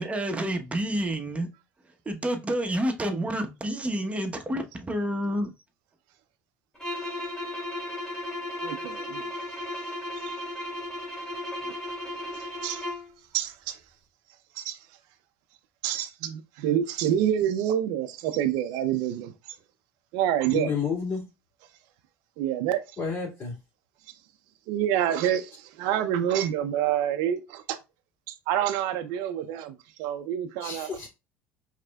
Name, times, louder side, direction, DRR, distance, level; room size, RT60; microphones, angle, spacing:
voice 1, 0.0-1.5 1.8-5.5, right 1 dB, 20° right, 0.9 m, -29 dB
sound 1, 6.7-13.1, left 1 dB, 10° left, 2.0 m, -35 dB
voice 2, 8.6-9.2 10.2-10.4 11.7-11.8 12.3-12.9 13.3-13.8 14.6-14.8 15.8-19.3 20.1-20.7 22.4-22.8 24.7-27.8 28.3-31.1, right 10 dB, 75° right, 0.5 m, -27 dB
voice 3, 20.5-21.2 23.0-23.6 30.6-31.1, left 6 dB, 35° left, 2.4 m, -30 dB
4.8 x 3.2 x 2.3 m
supercardioid pair, 85°, 7 cm